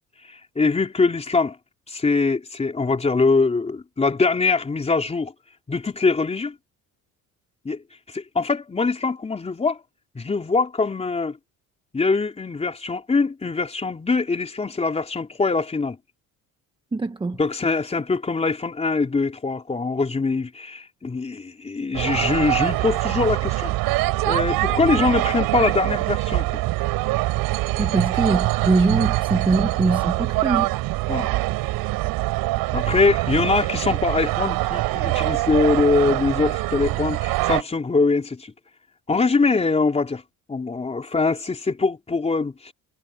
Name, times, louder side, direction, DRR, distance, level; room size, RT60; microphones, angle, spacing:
voice 1, 0.3-1.6 1.9-5.3 5.7-6.5 7.6-7.8 8.1-9.8 10.1-11.4 11.9-16.0 17.4-23.7 24.3-26.6 31.1-31.3 32.7-38.5 39.1-40.2 40.5-42.7, left 4 dB, 20° left, 4.0 m, -23 dB
voice 2, 16.9-17.4 27.8-30.7, right 3 dB, 15° right, 1.3 m, -22 dB
sound 1, 21.9-37.6, right 19 dB, 90° right, 5.1 m, -24 dB
cardioid pair, 140°, 35 cm